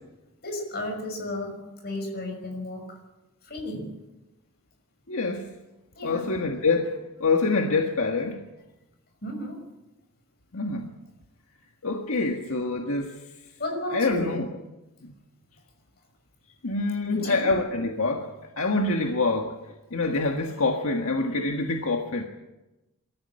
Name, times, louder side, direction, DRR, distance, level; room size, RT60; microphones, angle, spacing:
voice 1, 0.4-3.0 3.4-3.9 5.9-6.3 9.2-9.6 13.6-14.4 17.0-17.5, left 1 dB, 45° left, 3 dB, 6.2 m, -33 dB
voice 2, 5.1-5.5 6.0-6.9 7.2-8.4 10.5-10.9 11.8-13.1 13.9-14.5 15.0-15.1 16.6-19.5 19.9-22.2, left 3 dB, 75° left, 2 dB, 1.7 m, -26 dB
22.5 x 14.0 x 8.8 m, 1.0 s
head